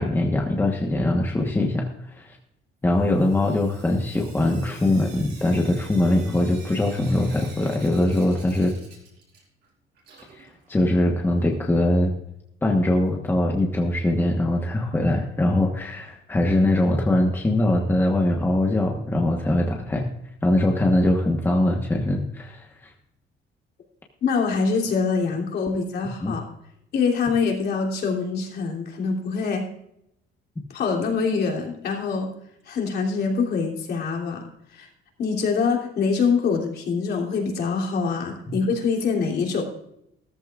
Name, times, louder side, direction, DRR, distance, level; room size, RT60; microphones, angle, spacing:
voice 1, 0.0-2.4 2.8-8.7 10.3-12.1 12.6-20.1 20.4-22.9 26.2-26.4, left 1 dB, 10° left, 0 dB, 1.2 m, -22 dB
Sink (filling or washing) / Drip, 2.9-9.7 9.9-11.9 13.1-13.2 13.5-13.6 13.8-13.9 16.8-16.9 17.4-17.5 18.0-18.1 18.7-18.8 19.5-19.6 20.4-20.5, right 5 dB, 55° right, 4.6 m, -48 dB
voice 2, 24.2-26.4 26.9-29.7 30.7-32.3 32.7-34.5 34.7-34.9 35.2-39.6, left 5 dB, 50° left, 0 dB, 3.2 m, -24 dB
15.0 x 14.0 x 2.5 m, 0.77 s
cardioid pair, 175°, 21 cm